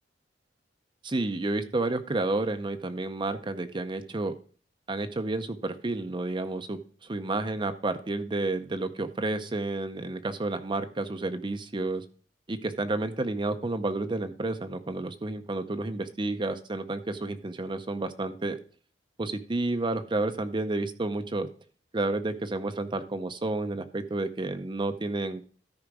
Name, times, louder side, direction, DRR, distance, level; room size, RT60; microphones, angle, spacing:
voice 1, 1.0-4.3 4.9-12.0 12.5-18.6 19.2-21.5 21.9-25.4, right 2 dB, 25° right, 8 dB, 0.6 m, -30 dB
13.5 x 4.9 x 4.8 m, 0.43 s
head